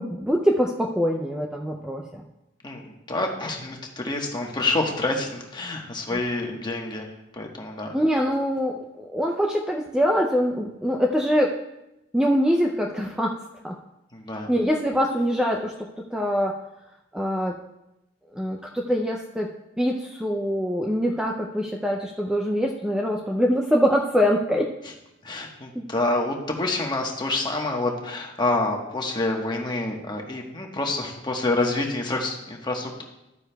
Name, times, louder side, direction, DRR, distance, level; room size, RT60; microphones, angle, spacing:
voice 1, 0.0-2.2 7.9-11.6 12.1-13.4 13.6-13.8 14.5-15.7 16.1-16.6 17.1-17.6 18.3-19.5 19.8-24.7 25.7-25.9, equal, 5° right, 0 dB, 0.5 m, -24 dB
voice 2, 2.6-7.0 7.4-7.9 14.1-14.5 25.2-33.0, left 2 dB, 25° left, 1 dB, 1.2 m, -27 dB
12.5 x 9.3 x 2.3 m, 0.92 s
head